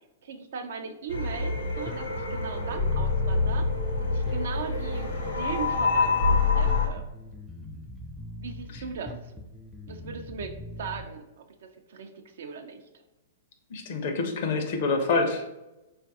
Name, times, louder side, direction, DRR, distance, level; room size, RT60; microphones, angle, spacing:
voice 1, 0.2-3.7 4.0-7.0 8.4-9.3 9.9-12.9, right 6 dB, 65° right, 7 dB, 0.4 m, -38 dB
sound 1, 1.1-6.9, left 4 dB, 80° left, 1.0 m, -26 dB
Bass guitar, 1.6-11.0, left 1 dB, 5° left, 0.5 m, -42 dB
voice 2, 13.7-15.5, left 3 dB, 55° left, 5 dB, 0.6 m, -27 dB
3.9 x 2.4 x 2.4 m, 0.97 s
figure-of-eight pair, 110°, 0 cm